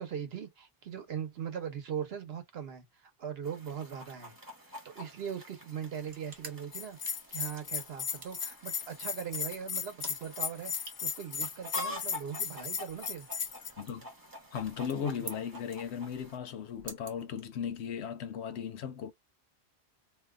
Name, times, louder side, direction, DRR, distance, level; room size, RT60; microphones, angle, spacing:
voice 1, 0.0-4.3 4.8-13.3, right 8 dB, 65° right, 1.1 m, -40 dB
Chicken rooster, 3.4-16.4, left 1 dB, 20° right, 1.1 m, -47 dB
sound 1, 5.9-17.9, right 3 dB, 40° right, 1.1 m, -52 dB
Bell, 6.7-13.7, left 6 dB, 60° left, 0.3 m, -36 dB
voice 2, 13.8-14.1 14.5-19.1, left 7 dB, 80° left, 0.9 m, -37 dB
2.7 x 2.2 x 3.5 m
omnidirectional pair, 1.1 m